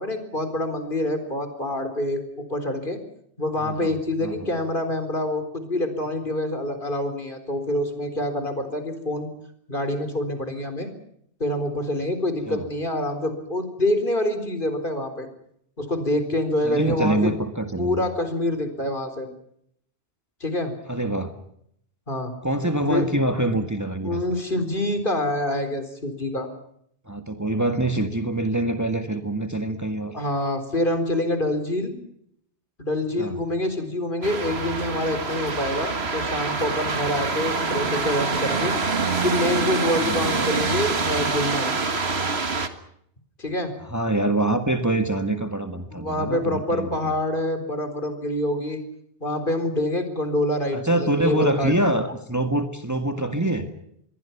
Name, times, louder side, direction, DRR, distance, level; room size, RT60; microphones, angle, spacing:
voice 1, 0.0-3.0 3.4-9.3 9.7-10.9 11.4-15.3 15.8-17.3 17.8-19.3 20.4-20.7 22.1-22.3 22.9-23.1 24.0-26.5 30.1-31.9 32.8-38.7 39.2-41.7 43.4-43.7 45.9-48.8 49.2-51.7, left 1 dB, 50° left, 9 dB, 4.3 m, -26 dB
voice 2, 3.6-4.5 12.5-12.7 16.6-18.1 20.9-21.3 22.4-24.2 27.1-30.1 33.2-33.4 40.0-40.3 43.8-47.1 50.7-53.7, right 1 dB, 15° right, 7 dB, 1.8 m, -25 dB
sound 1, 34.2-42.7, right 4 dB, 65° right, 2.1 m, -25 dB
27.5 x 22.5 x 5.9 m, 0.71 s
omnidirectional pair, 1.1 m